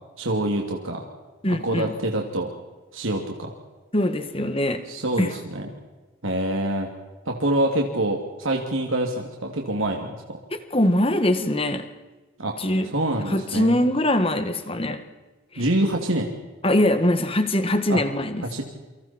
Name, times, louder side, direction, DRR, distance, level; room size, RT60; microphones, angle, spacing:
voice 1, 0.2-1.0 1.5-2.5 2.9-3.5 4.9-5.7 6.2-6.9 7.3-10.2 12.4-12.6 12.8-13.8 15.6-16.3 17.9-18.0 18.4-18.6, right 1 dB, 75° right, 1 dB, 2.7 m, -25 dB
voice 2, 1.4-2.0 3.9-4.8 5.2-5.3 10.7-11.9 12.6-12.9 13.3-15.0 16.6-18.4, left 1 dB, 25° left, 9 dB, 1.7 m, -22 dB
29.0 x 25.5 x 4.5 m, 1.2 s
head